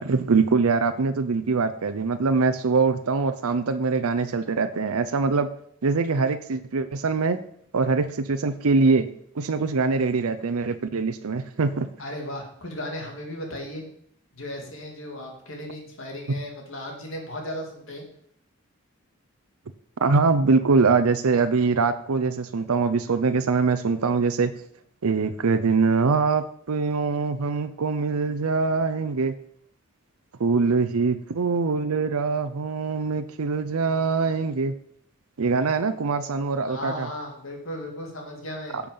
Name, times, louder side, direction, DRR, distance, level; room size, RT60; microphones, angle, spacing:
voice 1, 0.0-5.5 5.8-7.4 7.7-9.1 9.4-11.9 20.0-24.5 25.0-29.3 30.4-34.7 35.4-37.1 38.7-38.8, right 4 dB, 85° right, 10 dB, 0.6 m, -23 dB
voice 2, 12.0-13.8 14.3-18.0 30.6-30.7 36.7-38.8, left 1 dB, 65° left, 1 dB, 2.7 m, -36 dB
10.5 x 7.1 x 5.5 m, 0.67 s
head